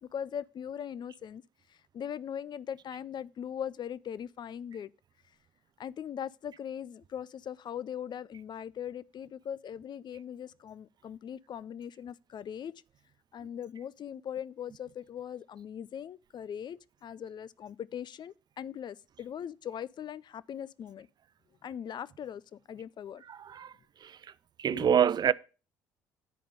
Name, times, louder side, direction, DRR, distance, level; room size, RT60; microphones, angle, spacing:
voice 1, 0.0-1.4 1.7-4.9 5.8-12.7 13.3-21.1 21.6-23.2 24.7-25.0, left 9 dB, 45° left, 0.5 m, -40 dB
voice 2, 23.3-23.7 24.0-24.2 24.6-25.3, right 8 dB, 40° right, 0.5 m, -26 dB
9.6 x 5.1 x 6.7 m
hypercardioid pair, 55°, 11 cm